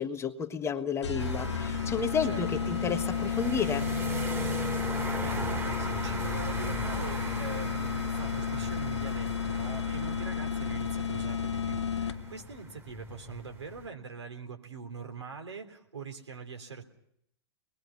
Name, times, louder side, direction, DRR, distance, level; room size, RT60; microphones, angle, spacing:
voice 1, 0.0-3.9, left 6 dB, 20° left, 7 dB, 1.3 m, -31 dB
sound 1, 1.0-12.4, left 6 dB, 85° left, 1.4 m, -32 dB
sound 2, 1.2-13.9, right 2 dB, 15° right, 2.0 m, -39 dB
voice 2, 4.9-16.8, right 5 dB, 85° right, 4 dB, 3.4 m, -43 dB
25.0 x 21.0 x 5.8 m, 0.72 s
hypercardioid pair, 110°, 14 cm